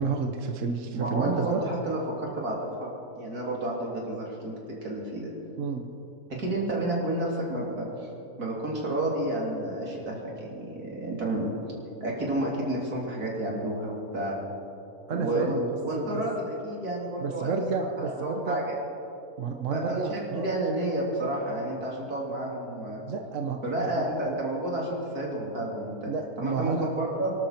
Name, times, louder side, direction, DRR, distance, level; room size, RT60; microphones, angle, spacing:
voice 1, 0.0-1.6 5.6-5.9 15.1-16.2 17.2-18.6 19.4-20.5 23.1-24.1 26.0-26.9, right 5 dB, 60° right, 4 dB, 1.3 m, -30 dB
voice 2, 0.9-2.9 3.2-4.6 4.8-5.3 6.3-8.1 8.4-11.5 12.0-14.4 15.1-17.6 18.0-18.8 19.7-23.1 23.6-26.1 26.4-27.3, right 1 dB, 85° right, -3 dB, 3.8 m, -30 dB
24.5 x 12.5 x 4.5 m, 2.8 s
omnidirectional pair, 1.6 m